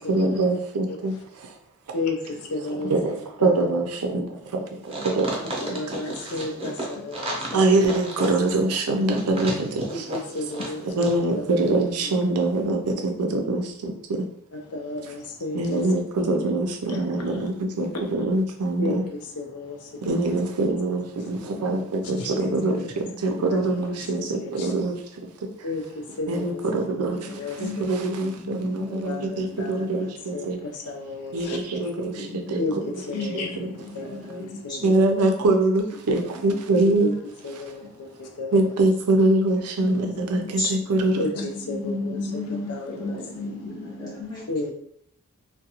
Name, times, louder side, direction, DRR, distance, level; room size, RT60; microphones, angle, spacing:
voice 1, 0.0-1.6 2.7-6.3 7.5-10.4 10.8-14.3 15.0-15.1 15.5-19.1 20.0-25.7 26.3-30.6 31.3-33.7 34.8-37.1 37.5-37.7 38.5-41.2, right 2 dB, 80° right, 0.5 m, -24 dB
voice 2, 1.9-2.9 3.4-3.6 5.6-7.6 9.9-10.8 11.3-11.4 14.7-15.8 16.2-16.4 16.9-17.5 18.8-19.0 19.4-19.9 22.2-22.3 23.5-24.7 25.6-25.8 26.2-26.6 27.4-28.0 29.0-31.6 32.6-32.8 33.1-33.5 33.9-34.8 37.0-37.1 37.4-38.7 40.0-40.1 41.2-42.2 42.7-43.2 44.5-44.7, left 2 dB, 80° left, 0.5 m, -33 dB
sound 1, 4.9-10.8 11.0-11.1, right 1 dB, 25° right, 0.6 m, -32 dB
voice 3, 22.1-23.7 24.3-24.6 26.9-27.2 27.5-30.1 32.1-32.8 33.1-34.9 36.5-36.9 40.1-40.7 41.2-44.4, left 2 dB, 20° left, 0.6 m, -35 dB
2.4 x 2.2 x 2.8 m
head